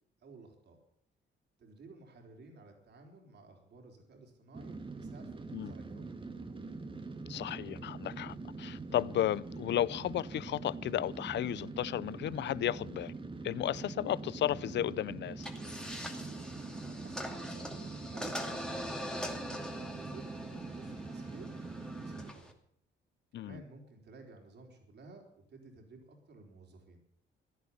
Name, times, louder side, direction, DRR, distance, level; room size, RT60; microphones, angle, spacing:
voice 1, 0.2-0.8 1.6-6.1 16.3-22.5 23.3-27.0, right 3 dB, 60° right, 4.2 m, -55 dB
sound 1, 4.5-22.3, right 3 dB, 25° right, 1.7 m, -43 dB
voice 2, 7.3-13.1 13.4-15.5 23.3-23.6, left 12 dB, 60° left, 0.5 m, -34 dB
sound 2, 15.4-22.5, left 1 dB, 5° left, 2.5 m, -43 dB
16.0 x 10.5 x 7.2 m
cardioid pair, 90°, 20 cm